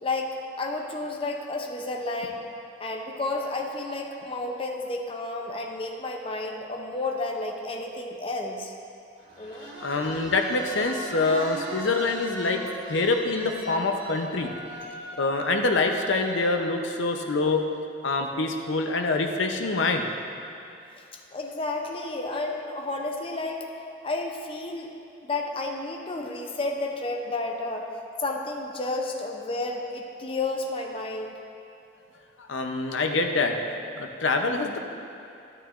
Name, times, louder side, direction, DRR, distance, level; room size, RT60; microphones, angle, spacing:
voice 1, 0.0-2.4 2.8-8.7 9.4-9.7 21.0-23.7 24.0-24.9 25.2-27.9 28.2-31.3, left 2 dB, 30° left, 2 dB, 0.5 m, -31 dB
sound 1, 9.2-16.5, right 1 dB, 85° right, 1.2 m, -39 dB
voice 2, 9.6-12.6 12.9-14.5 15.2-17.6 18.0-20.1 32.4-33.5 33.9-34.8, left 3 dB, 75° left, 4 dB, 0.7 m, -25 dB
11.0 x 9.8 x 2.5 m, 2.7 s
head